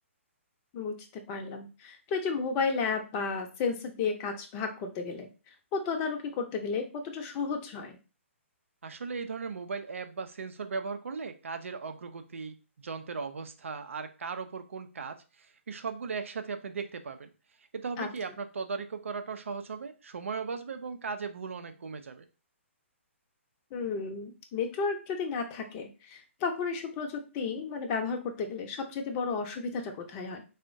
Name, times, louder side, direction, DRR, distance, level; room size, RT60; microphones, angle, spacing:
voice 1, 1.3-5.3 5.7-8.0 18.0-18.1 23.7-30.4, left 5 dB, 30° left, 4 dB, 0.6 m, -33 dB
voice 2, 8.8-17.3 17.7-22.2, right 5 dB, 70° right, 8 dB, 0.5 m, -37 dB
3.5 x 2.1 x 2.5 m, 0.33 s
figure-of-eight pair, 130°, 7 cm